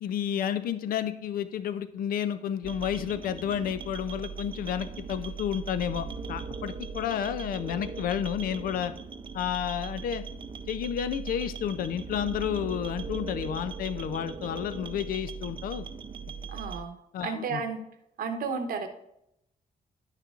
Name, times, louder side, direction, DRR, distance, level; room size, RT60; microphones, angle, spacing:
voice 1, 0.0-8.9 9.3-10.2 10.7-15.8 17.1-17.6, left 9 dB, 80° left, 12 dB, 0.5 m, -31 dB
sound 1, 2.6-16.8, right 5 dB, 35° right, 0.5 m, -39 dB
voice 2, 16.5-17.8 18.2-18.9, right 5 dB, 80° right, 7 dB, 0.9 m, -33 dB
10.5 x 6.5 x 2.5 m, 0.79 s
cardioid pair, 95°, 15 cm